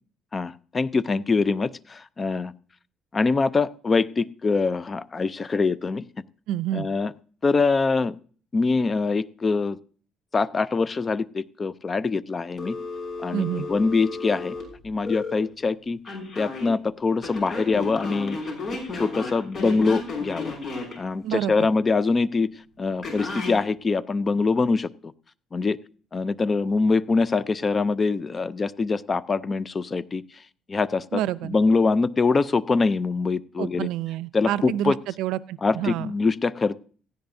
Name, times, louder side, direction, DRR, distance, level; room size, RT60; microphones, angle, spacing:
voice 1, 0.3-2.5 3.1-6.0 6.7-7.1 7.4-8.2 8.5-9.8 10.3-12.8 13.2-14.6 14.8-16.0 16.4-18.4 18.7-20.5 21.0-22.5 22.8-25.1 25.5-25.8 26.1-30.2 30.7-33.9 34.3-35.0 35.6-36.7, left 4 dB, 30° left, 16 dB, 0.5 m, -24 dB
voice 2, 6.5-6.9 13.3-13.7 21.2-21.7 31.1-31.6 33.6-36.1, right 12 dB, 85° right, 16 dB, 0.5 m, -28 dB
Telephone, 12.6-15.3 16.0-16.7 17.2-21.0 23.0-23.6, left 3 dB, 45° left, 6.3 m, -33 dB
17.5 x 15.5 x 2.7 m, 0.44 s
cardioid pair, 115°, 0 cm